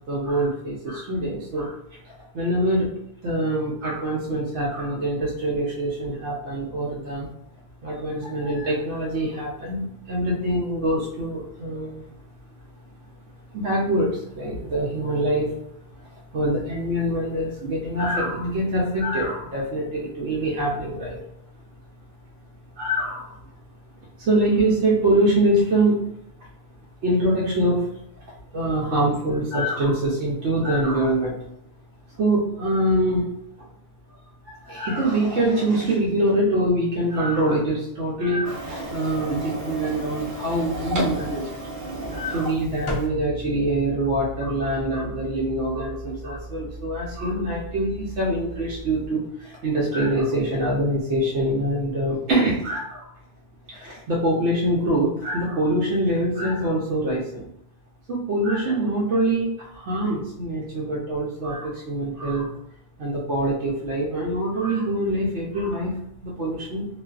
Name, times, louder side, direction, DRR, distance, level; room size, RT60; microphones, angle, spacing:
voice 1, 0.1-1.8 2.0-2.9 3.2-7.3 7.8-12.0 13.5-15.5 16.3-21.2 22.8-23.4 24.2-26.1 27.0-27.9 28.3-31.4 32.1-33.2 33.6-33.7 34.5-41.5 42.1-53.1 53.7-57.5 58.1-62.5 63.0-66.9, right 1 dB, 80° right, -5 dB, 0.9 m, -24 dB
Printer, 38.4-43.1, right 2 dB, 60° right, 0.6 m, -32 dB
sound 1, 42.9-49.1, equal, 50° left, 0.4 m, -37 dB
2.4 x 2.4 x 2.3 m, 0.73 s
omnidirectional pair, 1.2 m